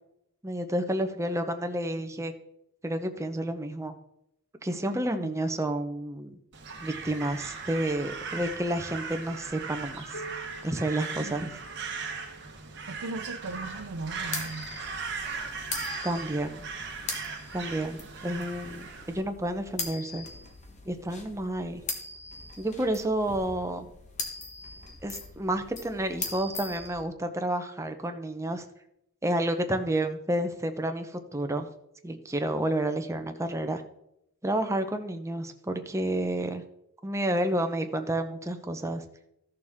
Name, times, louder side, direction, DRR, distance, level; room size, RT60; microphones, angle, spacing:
voice 1, 0.4-2.3 2.8-3.9 4.6-6.3 6.8-10.1 10.6-11.5 16.0-16.6 17.5-20.3 20.8-21.8 22.6-23.9 25.0-28.7 29.2-31.7 32.0-33.8 34.4-36.6 37.0-39.0, right 1 dB, 15° right, 6 dB, 0.8 m, -30 dB
voice 2, 4.9-5.3 11.2-11.5 12.9-14.7, right 3 dB, 80° right, 4 dB, 0.7 m, -38 dB
Crow, 6.5-19.2, right 4 dB, 50° right, 1.6 m, -38 dB
Piano, 10.1-15.4 16.3-16.4 16.9-17.0 17.8-17.9 18.9-19.0, right 2 dB, 55° left, 1.4 m, -50 dB
sound 1, 13.5-27.0, left 4 dB, 30° left, 1.2 m, -41 dB
14.0 x 6.7 x 3.6 m, 0.79 s
head